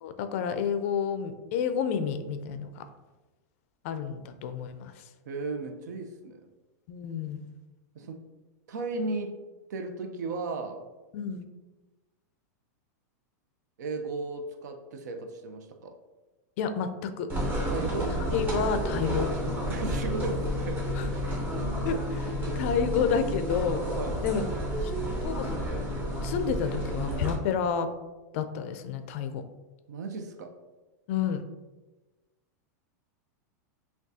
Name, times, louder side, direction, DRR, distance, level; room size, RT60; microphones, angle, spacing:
voice 1, 0.0-2.8 3.8-5.0 6.9-7.5 11.1-11.4 16.6-17.3 18.3-19.3 21.0-21.1 21.8-23.9 24.2-24.5 24.8-24.9 25.2-25.6 26.2-27.9 28.3-29.4 31.1-31.5, left 7 dB, 50° left, 9 dB, 0.4 m, -30 dB
voice 2, 5.3-6.4 7.9-8.2 8.7-9.4 9.7-10.9 13.8-16.0 17.7-18.2 19.7-21.4 24.0-24.2 29.9-30.5, right 3 dB, 80° right, 6 dB, 0.6 m, -35 dB
sound 1, 17.3-27.3, equal, 20° right, 0.9 m, -30 dB
5.9 x 2.3 x 2.7 m, 1.2 s
supercardioid pair, 155°, 9 cm